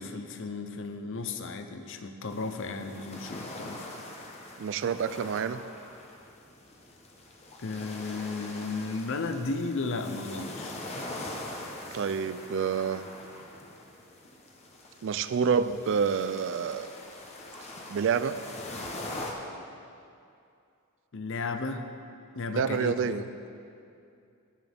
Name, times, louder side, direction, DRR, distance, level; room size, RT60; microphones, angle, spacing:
voice 1, 0.0-3.9 7.6-10.8 21.1-21.9 22.3-23.3, left 3 dB, 60° left, 8 dB, 0.6 m, -34 dB
sound 1, 2.3-19.3, left 2 dB, 30° left, 0.9 m, -43 dB
voice 2, 4.6-5.6 11.9-13.1 15.0-16.9 17.9-18.4 22.5-23.2, right 6 dB, 60° right, 13 dB, 0.3 m, -28 dB
18.5 x 6.2 x 3.5 m, 2.5 s
head